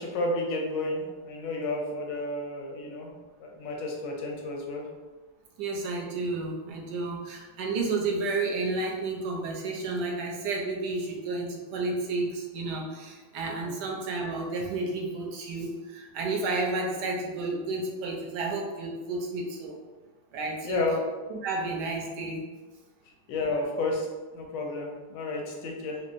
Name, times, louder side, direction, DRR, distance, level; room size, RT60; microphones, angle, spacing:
voice 1, 0.0-3.1 3.4-4.8 13.6-13.7 20.6-21.0 23.3-24.1 24.3-26.0, left 2 dB, 80° left, 0 dB, 1.3 m, -31 dB
voice 2, 5.6-19.8 20.3-20.9 21.3-22.4 23.5-23.6, right 3 dB, 75° right, -1 dB, 1.2 m, -31 dB
4.4 x 2.1 x 2.5 m, 1.3 s
omnidirectional pair, 2.0 m